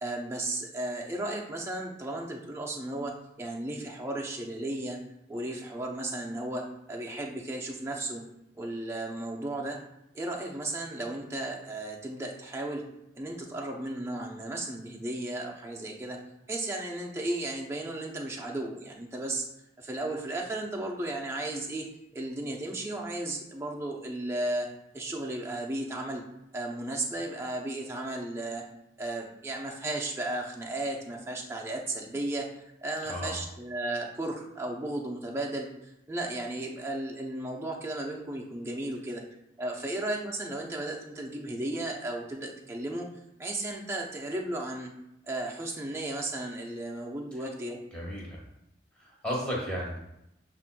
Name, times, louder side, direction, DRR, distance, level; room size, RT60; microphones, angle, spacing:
voice 1, 0.0-3.1 3.4-5.0 5.3-8.2 8.5-9.8 10.1-12.8 13.1-16.2 16.5-19.5 19.8-21.9 22.1-24.7 24.9-26.2 26.5-28.6 29.0-32.5 32.8-39.2 39.6-43.1 43.4-44.9 45.3-47.8, right 1 dB, 15° right, -1 dB, 0.6 m, -34 dB
voice 2, 47.9-48.4 49.0-50.0, equal, 5° left, -6 dB, 1.4 m, -34 dB
7.2 x 2.5 x 2.2 m, 0.84 s
head